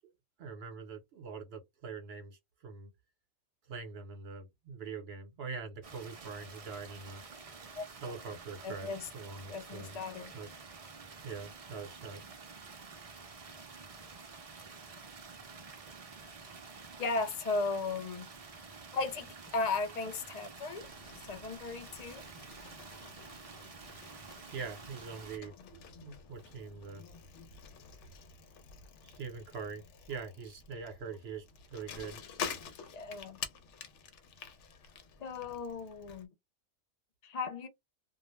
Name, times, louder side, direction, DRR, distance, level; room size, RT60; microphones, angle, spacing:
voice 1, 0.4-2.9 3.7-7.2 8.0-10.0 10.3-10.6 11.2-12.2 24.5-27.0 29.0-32.2, right 5 dB, 60° right, 1.0 m, -44 dB
sound 1, 5.8-25.4, right 4 dB, 45° right, 0.5 m, -50 dB
voice 2, 8.6-9.1 9.5-10.3 17.0-18.3 18.9-20.9 21.2-22.2 25.6-25.7 25.9-26.1 26.9-27.5 32.9-33.4 35.2-36.3 37.2-37.7, left 3 dB, 50° left, 0.5 m, -36 dB
Bicycle, 20.7-36.2, left 6 dB, 80° left, 0.9 m, -48 dB
2.3 x 2.1 x 3.1 m
omnidirectional pair, 1.2 m